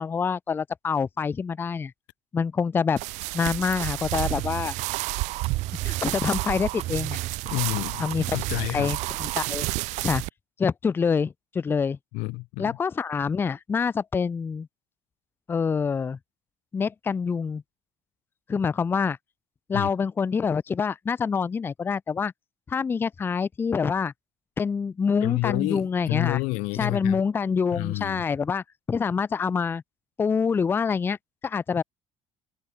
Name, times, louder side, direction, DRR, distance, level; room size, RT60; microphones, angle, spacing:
voice 1, 0.0-1.9 2.3-3.0 3.3-4.7 5.8-7.2 8.0-8.3 8.7-9.6 10.0-10.2 10.6-12.0 12.6-14.7 15.5-16.2 16.7-17.6 18.5-19.2 19.7-22.3 22.7-24.1 24.6-26.4 26.7-29.8 30.2-31.2 31.4-31.8, left 6 dB, 15° left, 0.5 m, -26 dB
sound 1, 3.0-10.3, right 24 dB, 70° right, 0.4 m, -31 dB
sound 2, 4.1-9.5, right 15 dB, 55° right, 1.9 m, -35 dB
voice 2, 7.4-8.0 8.3-8.9 12.1-12.8 19.7-19.9 25.2-27.2 27.7-28.2, left 26 dB, 85° left, 0.9 m, -29 dB
cardioid pair, 165°, 13 cm